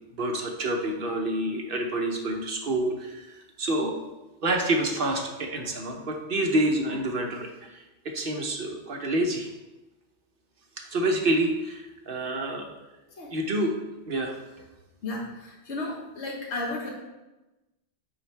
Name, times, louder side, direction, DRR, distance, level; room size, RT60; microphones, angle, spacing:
voice 1, 0.1-3.9 4.4-9.5 10.8-12.7 13.3-13.7 14.1-14.4, right 1 dB, 50° right, 1 dB, 1.1 m, -28 dB
voice 2, 15.0-16.9, left 2 dB, 70° left, -2 dB, 1.5 m, -33 dB
8.5 x 4.5 x 3.4 m, 1.0 s
omnidirectional pair, 1.2 m